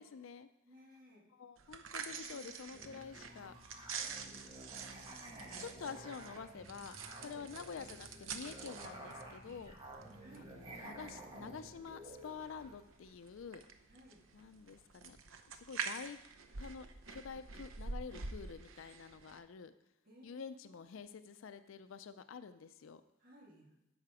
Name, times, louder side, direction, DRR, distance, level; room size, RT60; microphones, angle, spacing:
voice 1, 0.0-0.5 1.4-3.6 4.8-5.1 5.6-9.7 10.4-13.6 14.3-15.2 15.5-16.2 16.6-19.7 20.2-23.0, left 6 dB, 75° left, 11 dB, 0.4 m, -48 dB
voice 2, 0.6-1.3 2.0-2.7 4.0-4.5 7.2-7.5 10.2-10.6 13.9-14.3 20.0-20.9 23.2-23.7, equal, 45° right, -2 dB, 2.1 m, -61 dB
sound 1, 1.6-19.4, right 5 dB, 80° right, 0.7 m, -48 dB
Musical instrument, 2.7-12.8, right 1 dB, 25° right, 1.3 m, -52 dB
13.0 x 4.9 x 4.9 m, 0.90 s
head